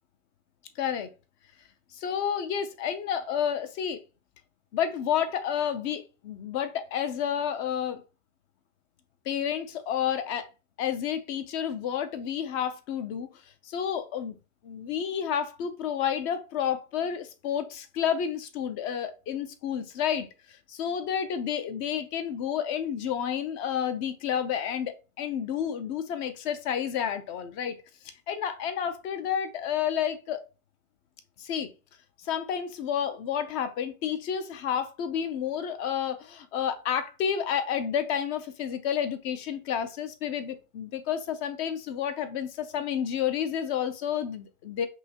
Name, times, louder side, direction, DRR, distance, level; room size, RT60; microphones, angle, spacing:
voice 1, 0.8-1.1 1.9-4.0 4.7-8.0 9.2-10.5 10.8-13.3 13.6-14.3 14.6-27.8 28.0-30.4 31.4-31.7 32.2-44.9, left 8 dB, 30° left, 0.6 m, -30 dB
5.5 x 2.7 x 2.9 m
hypercardioid pair, 135°, 41 cm